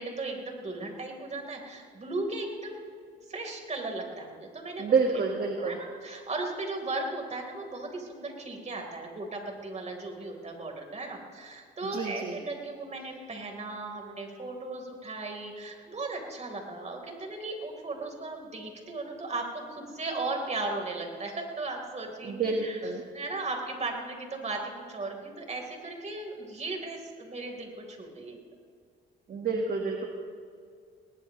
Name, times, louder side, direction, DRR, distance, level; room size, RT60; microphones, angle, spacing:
voice 1, 0.0-2.9 3.3-4.9 5.6-22.8 23.1-28.4, right 2 dB, 35° right, 2 dB, 3.9 m, -36 dB
voice 2, 4.8-5.8 11.8-12.4 22.2-23.0 29.3-30.1, right 4 dB, 50° right, 1 dB, 1.6 m, -28 dB
20.5 x 19.0 x 3.2 m, 2.2 s
cardioid pair, 90°, 20 cm